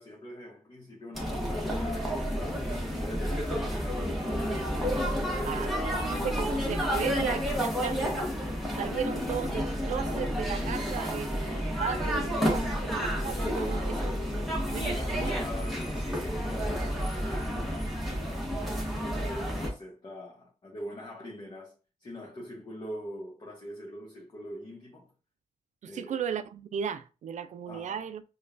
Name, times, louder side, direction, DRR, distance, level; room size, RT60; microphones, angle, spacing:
voice 1, 0.0-4.8 5.1-6.4 9.1-9.2 12.5-12.8 13.6-14.2 14.8-21.7 22.0-25.1 25.8-26.2 27.7-28.0, equal, 35° left, 1.0 m, -43 dB
sound 1, 1.1-19.7, equal, ahead, 1.3 m, -30 dB
voice 2, 5.4-8.2 8.8-14.1 14.7-15.4 25.8-28.2, right 7 dB, 70° right, 0.4 m, -36 dB
5.0 x 2.3 x 2.5 m
wide cardioid pair, 115°, 13 cm